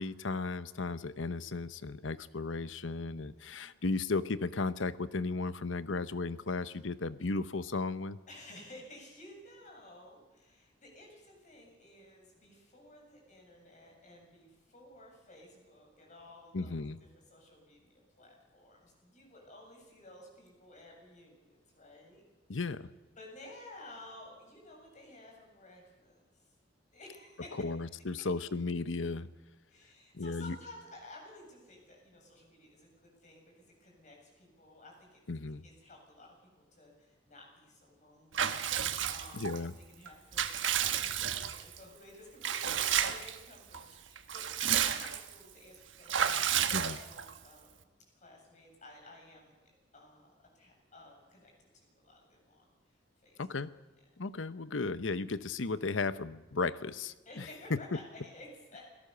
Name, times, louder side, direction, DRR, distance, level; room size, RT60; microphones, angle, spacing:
voice 1, 0.0-8.2 16.5-17.0 22.5-22.9 27.6-29.3 30.1-30.5 35.3-35.6 39.4-39.7 46.7-47.0 53.4-53.7 54.2-57.1 57.7-57.8, left 3 dB, 75° left, 14 dB, 0.9 m, -35 dB
voice 2, 3.4-4.0 8.3-16.8 17.1-22.2 23.2-26.5 26.9-27.5 29.7-35.2 35.6-39.5 40.0-49.6 49.9-53.7 57.2-58.9, left 1 dB, 40° left, 0 dB, 7.7 m, -54 dB
Water / Bathtub (filling or washing) / Liquid, 38.3-39.6 40.1-41.8 42.4-43.4 43.7-43.8 44.2-45.3 46.1-47.4, right 9 dB, 70° right, 1.5 m, -31 dB
27.5 x 18.0 x 6.9 m, 1.1 s
head